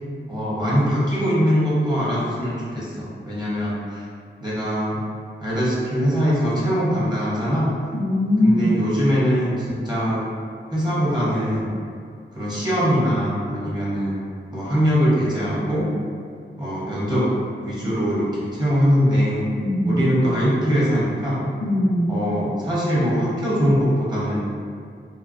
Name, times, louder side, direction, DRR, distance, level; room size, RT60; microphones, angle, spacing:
voice 1, 0.3-4.0 4.4-5.0 5.4-7.7 8.4-10.2 10.7-11.7 12.3-14.2 14.5-15.9 16.6-17.3 17.6-19.4 19.9-21.4 22.1-24.4, equal, 20° right, -8 dB, 1.0 m, -22 dB
voice 2, 7.9-8.7 19.6-20.0 21.6-22.1, left 1 dB, 50° left, -6 dB, 0.6 m, -20 dB
3.0 x 2.1 x 2.5 m, 2.2 s
wide cardioid pair, 50°, 20 cm